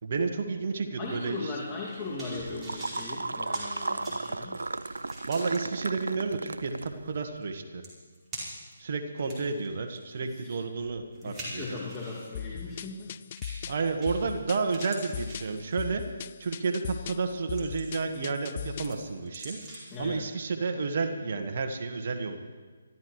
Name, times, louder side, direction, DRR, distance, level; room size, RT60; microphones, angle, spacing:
voice 1, 0.0-1.6 5.3-7.8 8.8-11.8 13.7-16.0 16.4-19.6 20.0-22.4, right 4 dB, 50° right, 6 dB, 1.6 m, -31 dB
voice 2, 1.0-4.6 10.2-10.6 11.2-13.2 19.9-20.3, left 3 dB, 15° left, -6 dB, 2.4 m, -38 dB
sound 1, 1.7-5.6 6.1-6.2 7.4-7.5 7.8-8.7 9.2-12.3 13.4-13.7 14.0-14.4 14.7-16.0 16.5-16.8 17.2-18.1 18.5-20.0 20.3-20.4, right 1 dB, 15° right, 4.9 m, -45 dB
sound 2, 2.0-7.3, right 3 dB, 85° right, 0.4 m, -35 dB
sound 3, 12.3-19.0, left 9 dB, 40° left, 0.3 m, -39 dB
24.5 x 13.5 x 3.2 m, 1.4 s
figure-of-eight pair, 150°, 0 cm